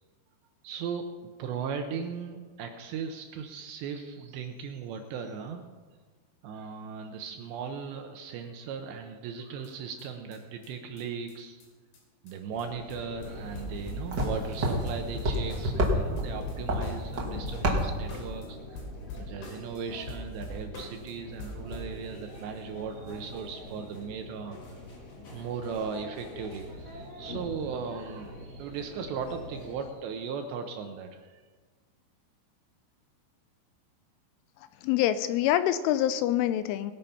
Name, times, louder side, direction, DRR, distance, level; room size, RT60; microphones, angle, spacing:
voice 1, 0.6-1.1 1.4-5.6 6.4-11.6 12.2-18.8 19.2-24.9 25.3-31.4, right 6 dB, 80° right, 5 dB, 2.7 m, -37 dB
sound 1, 9.6-9.7 10.0-10.1 10.3-10.4 10.6-10.7 11.0-11.1 11.3-11.4 11.6-11.7 11.9-12.0 12.3-12.4 12.6-13.0 13.2-13.3 13.5-15.9 16.2-18.5 18.8-19.8 20.1-21.1 21.4-22.0, left 1 dB, 65° left, 5.2 m, -42 dB
sound 2, 12.5-29.9, left 1 dB, 45° left, 2.5 m, -44 dB
sound 3, 13.2-18.4, equal, 60° right, 1.0 m, -30 dB
voice 2, 34.8-36.9, left 12 dB, 85° left, 12 dB, 2.9 m, -25 dB
19.5 x 8.9 x 5.8 m, 1.4 s
omnidirectional pair, 5.8 m